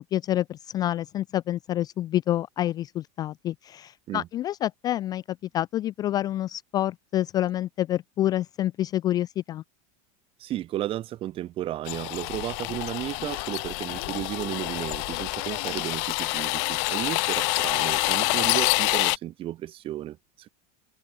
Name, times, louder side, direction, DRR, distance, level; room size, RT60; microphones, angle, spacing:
voice 1, 0.0-9.6, left 13 dB, 20° left, 0.4 m, -28 dB
voice 2, 10.4-20.5, right 13 dB, 30° right, 3.2 m, -33 dB
sound 1, 11.9-19.2, left 36 dB, 50° left, 1.5 m, -27 dB
supercardioid pair, 175°, 19 cm